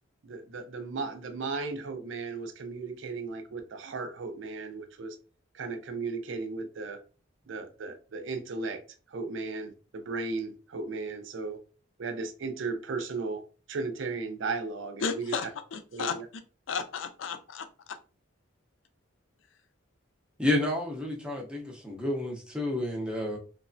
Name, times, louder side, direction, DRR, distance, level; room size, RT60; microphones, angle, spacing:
voice 1, 0.2-5.2 5.5-7.0 7.5-8.8 9.1-11.6 12.0-13.4 13.7-15.4 15.9-16.3, right 4 dB, 60° right, 0.4 m, -35 dB
voice 2, 15.0-16.2 16.7-18.0, left 6 dB, 70° left, 0.4 m, -34 dB
voice 3, 20.4-23.4, left 1 dB, 5° right, 0.5 m, -30 dB
3.1 x 2.1 x 2.5 m
head